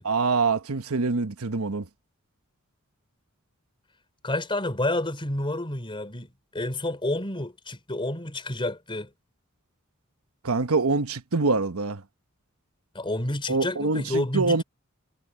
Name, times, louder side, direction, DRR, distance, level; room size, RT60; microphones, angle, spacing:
voice 1, 0.0-1.9 10.4-12.0 13.5-14.6, right 3 dB, 90° right, 1.1 m, -25 dB
voice 2, 4.2-9.1 12.9-14.6, left 1 dB, 25° left, 3.7 m, -29 dB
head